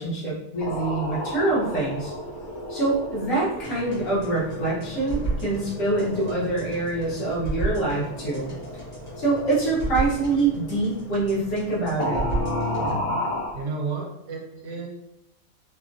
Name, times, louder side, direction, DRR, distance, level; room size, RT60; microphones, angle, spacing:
voice 1, 0.0-2.1 2.7-8.5 9.2-12.2, right 2 dB, 65° left, -7 dB, 1.3 m, -25 dB
sound 1, 0.6-11.7 12.0-13.6, left 1 dB, 85° left, 1.4 m, -33 dB
sound 2, 3.6-13.0, right 2 dB, 35° left, 1.0 m, -34 dB
voice 2, 13.5-14.9, right 4 dB, 65° right, 0 dB, 0.8 m, -32 dB
3.0 x 2.1 x 2.5 m, 0.84 s
omnidirectional pair, 1.5 m